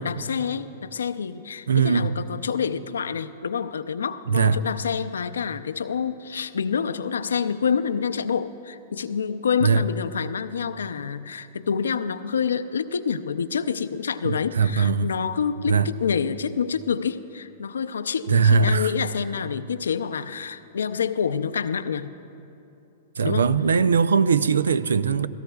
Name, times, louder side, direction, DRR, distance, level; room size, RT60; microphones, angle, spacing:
voice 1, 0.0-22.1 23.2-23.5, left 6 dB, 80° left, 0.5 m, -27 dB
voice 2, 1.7-2.1 4.3-4.6 9.6-9.8 14.2-15.1 15.7-15.9 18.3-18.9 23.2-25.3, right 5 dB, 80° right, 0.4 m, -20 dB
29.0 x 17.0 x 2.3 m
hypercardioid pair, 110°, 0 cm